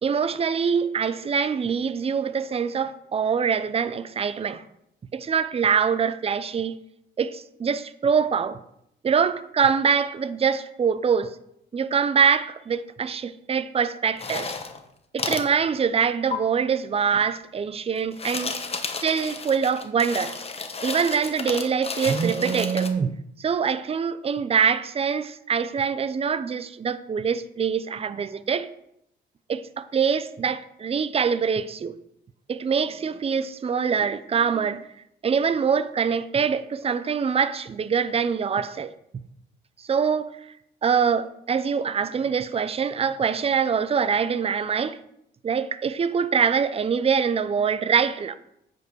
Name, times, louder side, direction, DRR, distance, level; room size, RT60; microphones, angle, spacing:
voice 1, 0.0-4.6 5.1-6.8 7.2-8.6 9.0-11.4 11.7-14.5 15.1-18.6 19.0-20.3 20.8-23.1 23.4-28.7 29.5-31.9 32.5-34.9 35.2-38.9 39.9-40.4 40.8-45.0 45.4-48.4, right 6 dB, 30° right, 0.6 m, -24 dB
sound 1, 14.2-14.8 15.2-15.5 16.3-16.4 18.0-22.9, left 4 dB, 30° left, 1.1 m, -32 dB
9.0 x 5.3 x 6.3 m
cardioid pair, 90°, 20 cm